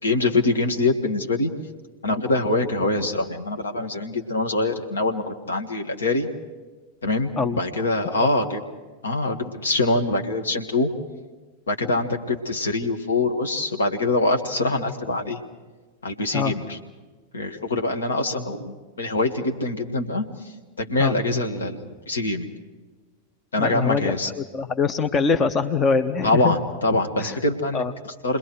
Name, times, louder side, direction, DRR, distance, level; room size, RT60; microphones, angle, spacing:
voice 1, 0.0-1.5 2.0-6.3 7.0-8.6 9.0-10.9 11.7-15.4 16.0-16.8 17.3-20.5 20.8-22.5 23.5-24.3 26.2-28.4, left 2 dB, 70° left, 4 dB, 1.8 m, -24 dB
voice 2, 23.6-26.6 27.2-27.4 27.7-27.9, left 5 dB, 25° left, 9 dB, 0.8 m, -23 dB
29.0 x 21.5 x 4.8 m, 1.3 s
figure-of-eight pair, 90°, 0 cm